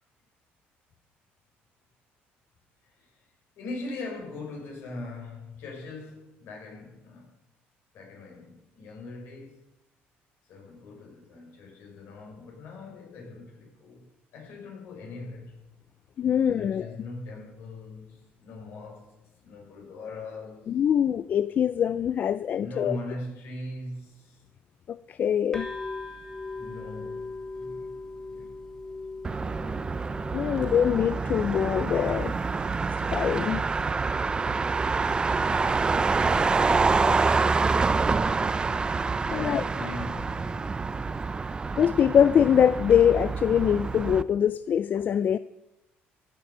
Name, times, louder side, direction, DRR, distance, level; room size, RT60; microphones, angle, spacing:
voice 1, 2.8-3.2 3.6-7.3 7.9-9.6 10.5-14.1 14.3-15.6 16.2-19.1 19.4-20.7 22.5-24.4 26.6-27.9 28.3-28.6 30.3-30.8 39.1-40.5, left 2 dB, 65° left, 5.9 m, -41 dB
voice 2, 16.2-16.9 20.7-23.0 24.9-25.7 30.3-32.3 33.1-33.6 39.3-39.6 41.8-45.4, left 9 dB, 45° left, 0.4 m, -23 dB
sound 1, 25.5-33.0, left 3 dB, 10° left, 3.2 m, -40 dB
Motor vehicle (road), 29.2-44.2, right 4 dB, 20° right, 0.5 m, -27 dB
15.5 x 10.5 x 5.6 m
cardioid pair, 120°, 4 cm